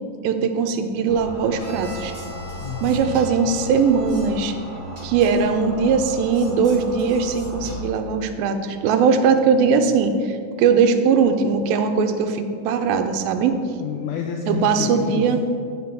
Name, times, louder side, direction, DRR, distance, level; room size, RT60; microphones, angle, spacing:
voice 1, 0.2-2.1 2.8-4.6 5.0-13.6 14.5-15.4, right 5 dB, 85° right, 7 dB, 2.4 m, -20 dB
sound 1, 1.1-7.8, equal, 70° right, 0.6 m, -35 dB
Bowed string instrument, 1.6-5.3, right 1 dB, 40° left, 1.7 m, -44 dB
voice 2, 2.6-3.2 13.8-15.4, left 7 dB, 85° left, 2 dB, 1.8 m, -29 dB
9.4 x 6.0 x 4.5 m, 2.4 s
omnidirectional pair, 4.1 m